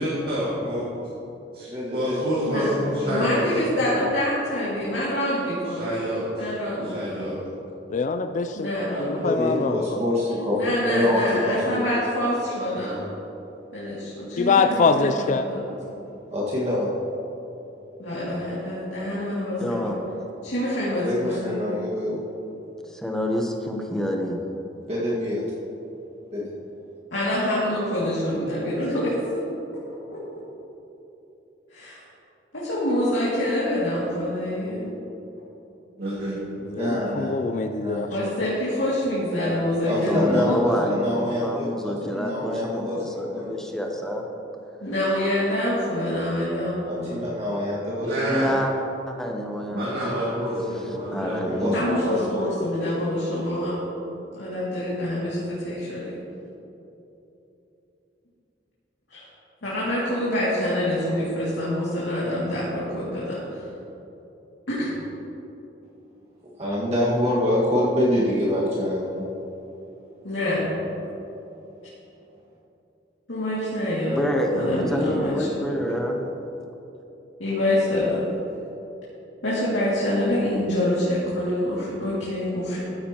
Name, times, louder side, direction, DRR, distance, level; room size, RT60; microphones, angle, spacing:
voice 1, 0.0-0.8 1.9-3.4 5.7-6.2 6.8-7.3 36.0-36.4 48.0-48.5 49.7-51.7, equal, 55° right, -7 dB, 1.9 m, -27 dB
voice 2, 1.7-2.3 2.6-3.2 3.9-4.0 9.2-11.8 14.5-14.8 16.3-16.9 21.0-22.2 24.8-25.4 26.3-26.5 36.8-37.4 37.8-38.1 39.3-39.5 39.8-43.6 44.0-44.2 46.9-48.6 51.4-52.3 66.6-69.3, left 1 dB, 35° right, -6 dB, 1.8 m, -26 dB
voice 3, 3.1-5.9 6.4-7.3 8.5-9.5 10.5-13.0 13.7-16.0 18.0-19.8 20.4-21.5 27.1-29.1 31.7-32.0 32.5-34.9 38.1-40.6 44.8-47.2 51.7-53.8 54.3-56.2 59.1-59.3 59.6-63.6 64.7-64.9 70.2-70.7 73.3-74.2 74.5-75.7 77.4-78.3 79.4-82.8, left 1 dB, 80° left, -9 dB, 2.4 m, -26 dB
voice 4, 7.9-8.7 9.0-10.0 14.4-15.4 36.7-38.1, left 4 dB, 40° left, 8 dB, 0.3 m, -23 dB
voice 5, 19.6-20.0 22.9-24.4 40.0-44.3 48.3-48.7 49.1-50.0 51.1-51.9 74.1-76.2, equal, 5° left, 1 dB, 0.9 m, -27 dB
14.0 x 9.3 x 3.0 m, 3.0 s
head